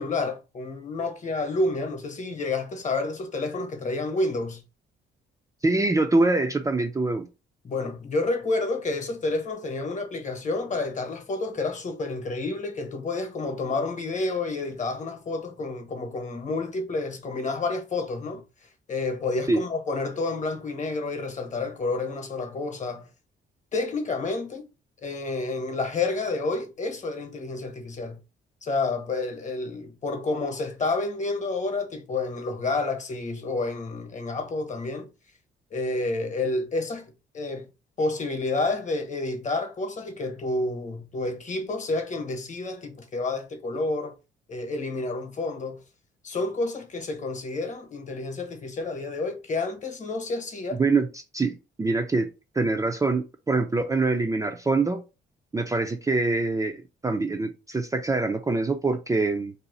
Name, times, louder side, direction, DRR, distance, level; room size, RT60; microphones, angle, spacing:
voice 1, 0.0-4.6 7.6-18.4 18.9-23.1 23.7-24.7 25.0-28.2 28.6-35.1 35.7-37.7 38.0-44.2 44.5-45.8 46.2-50.8, left 3 dB, 40° left, 1.0 m, -29 dB
voice 2, 5.6-7.3 19.5-19.6 50.8-52.3 52.5-55.0 55.5-59.5, right 3 dB, 15° right, 0.4 m, -24 dB
2.7 x 2.4 x 3.9 m
cardioid pair, 90°, 20 cm